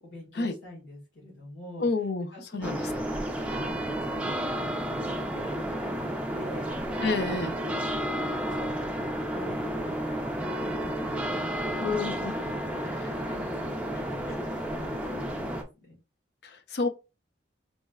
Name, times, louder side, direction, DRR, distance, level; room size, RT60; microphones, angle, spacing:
voice 1, 0.0-2.9 3.5-6.7 7.1-7.4 7.8-9.0 9.3-12.2 12.5-16.0, equal, 85° left, 1.7 m, -46 dB
voice 2, 1.8-2.3 2.5-2.8 7.0-7.6 11.8-12.3 16.4-16.9, left 3 dB, 60° left, 0.5 m, -28 dB
sound 1, 2.6-15.6, equal, 5° right, 0.4 m, -31 dB
4.1 x 3.4 x 2.3 m
head